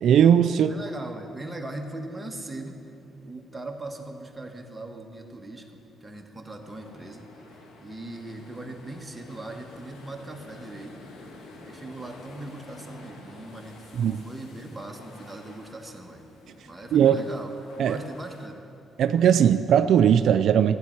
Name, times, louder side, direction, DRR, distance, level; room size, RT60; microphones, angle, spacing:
voice 1, 0.0-0.7 14.0-14.2 16.9-17.2 17.8-18.0 19.0-20.8, right 9 dB, 70° right, 11 dB, 0.3 m, -19 dB
voice 2, 0.7-2.8 3.2-7.3 7.5-11.0 11.6-16.2 16.6-18.6, right 2 dB, 10° right, 2 dB, 1.3 m, -39 dB
sound 1, 6.6-18.5, left 2 dB, 90° left, 1.4 m, -49 dB
14.5 x 9.8 x 4.5 m, 2.7 s
cardioid pair, 90°, 0 cm